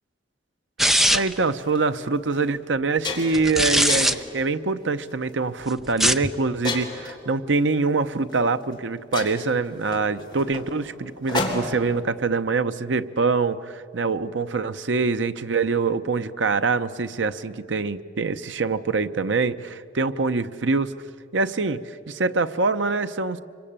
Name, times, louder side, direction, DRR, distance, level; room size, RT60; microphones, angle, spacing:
sound 1, 0.8-1.4 3.3-4.1 5.9-6.3, equal, ahead, 0.5 m, -20 dB
voice 1, 1.1-20.9 21.3-23.4, right 4 dB, 85° right, 10 dB, 0.8 m, -24 dB
sound 2, 1.6-1.8 2.3-2.4 2.7-3.5 3.9-4.3 5.0-5.3 6.6-7.2 8.3-8.4 8.7-8.8 9.1-11.9, left 3 dB, 25° left, 3.2 m, -31 dB
25.5 x 23.5 x 8.8 m, 2.5 s
head